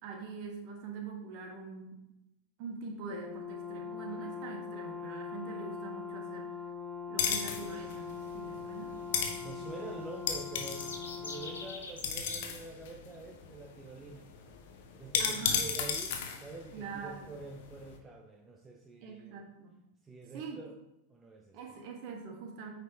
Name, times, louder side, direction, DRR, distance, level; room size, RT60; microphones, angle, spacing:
voice 1, 0.0-2.0 2.6-6.5 7.1-9.7 15.2-15.6 16.7-17.4 19.0-19.8 20.3-20.6 21.5-22.7, right 5 dB, 45° right, 2 dB, 1.4 m, -44 dB
Brass instrument, 3.1-11.8, left 6 dB, 35° left, 1.4 m, -42 dB
sound 1, 7.2-18.0, left 7 dB, 50° left, 0.8 m, -36 dB
voice 2, 9.4-19.4 20.0-20.8 21.1-21.6, right 3 dB, 15° right, 1 dB, 0.7 m, -46 dB
sound 2, 10.3-12.4, left 3 dB, 70° left, 1.1 m, -44 dB
9.0 x 4.5 x 2.8 m, 0.89 s
figure-of-eight pair, 90°, 0 cm